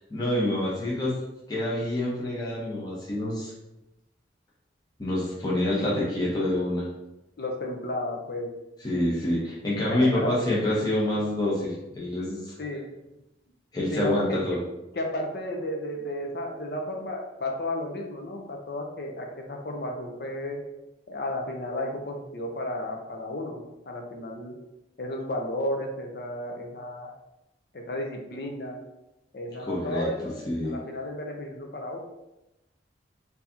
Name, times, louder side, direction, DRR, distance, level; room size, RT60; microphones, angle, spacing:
voice 1, 0.1-1.2 1.5-3.5 5.0-6.9 8.8-12.5 13.7-14.6 29.7-30.8, left 1 dB, 20° left, -6 dB, 0.8 m, -27 dB
voice 2, 7.4-8.5 9.9-10.3 12.6-12.8 13.9-14.6 14.9-20.6 21.1-24.5 25.0-27.1 27.7-28.8 29.3-30.4 30.6-32.0, left 1 dB, 55° left, 2 dB, 0.6 m, -33 dB
4.5 x 2.7 x 2.7 m, 0.94 s
head